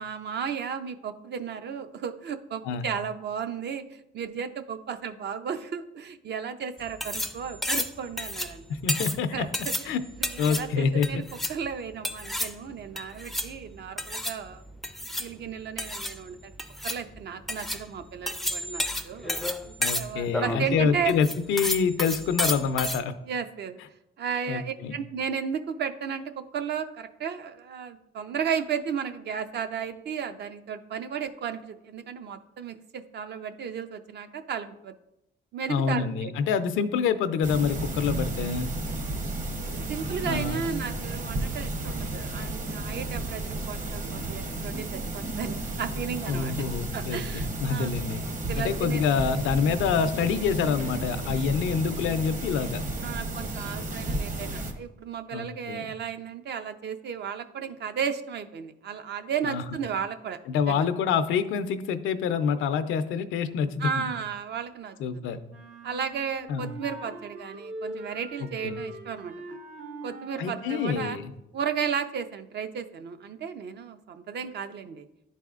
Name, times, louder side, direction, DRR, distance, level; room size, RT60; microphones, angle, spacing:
voice 1, 0.0-8.6 9.3-10.0 10.2-11.2 11.5-14.6 15.2-16.5 16.8-19.3 19.6-21.1 23.3-23.8 24.2-34.9 35.5-36.3 39.9-46.7 46.9-47.9 48.5-49.0 53.0-60.4 60.7-60.8 63.8-65.0 65.2-65.4 65.8-69.6 70.0-71.2 71.5-75.0, right 7 dB, 60° right, 9 dB, 0.5 m, -34 dB
sound 1, 6.8-23.0, left 1 dB, ahead, 0.4 m, -32 dB
voice 2, 8.7-9.4 9.9-10.0 10.4-11.2 19.8-23.1 24.5-25.0 35.7-38.7 40.2-40.6 46.3-48.2 48.6-52.8 55.3-55.9 59.4-59.6 60.5-64.0 65.0-65.4 66.5-66.7 68.4-68.8 70.4-71.3, left 6 dB, 85° left, 10 dB, 0.5 m, -27 dB
sound 2, 37.4-54.7, right 2 dB, 40° right, 0.9 m, -33 dB
sound 3, 65.5-71.2, right 2 dB, 90° right, 1.5 m, -42 dB
10.5 x 4.1 x 2.4 m, 0.87 s
cardioid pair, 90°, 20 cm